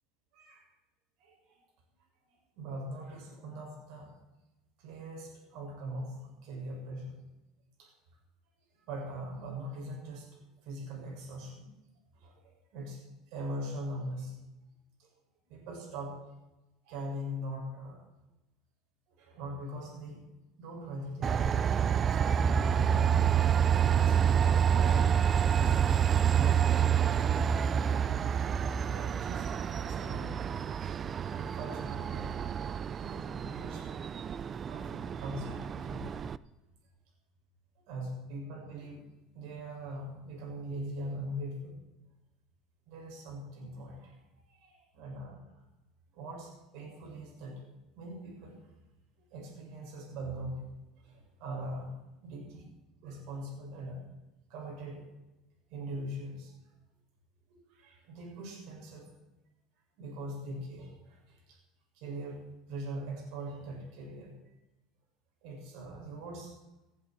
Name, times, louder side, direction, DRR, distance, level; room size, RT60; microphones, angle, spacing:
voice 1, 0.3-0.7 1.2-1.6 2.6-4.1 4.8-7.2 7.8-7.9 8.9-11.7 12.1-14.4 15.0-15.1 15.5-16.2 16.8-18.0 19.1-20.2 20.6-21.5 23.8-24.2 24.8-26.0 26.3-27.4 28.8-30.4 31.3-34.1 34.7-36.1 37.9-39.0 39.3-41.8 42.9-44.2 44.5-45.6 46.1-47.7 47.9-48.6 49.3-50.6 51.0-51.9 52.2-52.7 53.0-54.1 54.5-55.0 55.7-56.6 57.5-59.1 60.0-61.6 61.9-62.4 62.7-64.3 65.4-66.6, right 1 dB, 65° right, -1 dB, 6.8 m, -42 dB
Train, 21.2-36.4, right 8 dB, 30° right, 0.4 m, -28 dB
18.0 x 15.0 x 4.6 m, 1.0 s
cardioid pair, 145°, 0 cm